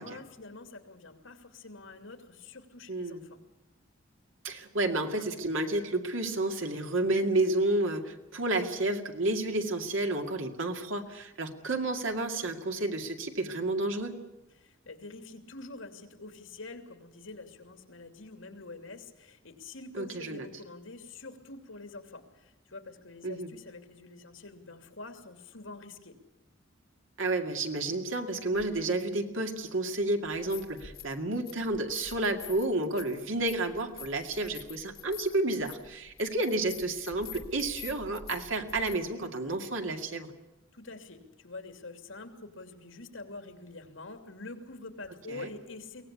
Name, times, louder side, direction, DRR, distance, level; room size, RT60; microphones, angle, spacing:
voice 1, 0.0-3.4 14.5-26.2 40.7-46.0, left 3 dB, 80° left, 7 dB, 2.9 m, -46 dB
voice 2, 2.9-3.2 4.4-14.2 20.0-20.5 23.2-23.5 27.2-40.3 45.3-45.5, right 2 dB, 70° right, 5 dB, 2.3 m, -31 dB
sound 1, 28.6-28.7 30.2-31.2 31.5-39.0, left 8 dB, 50° left, 3.0 m, -47 dB
23.5 x 18.0 x 8.5 m, 0.98 s
head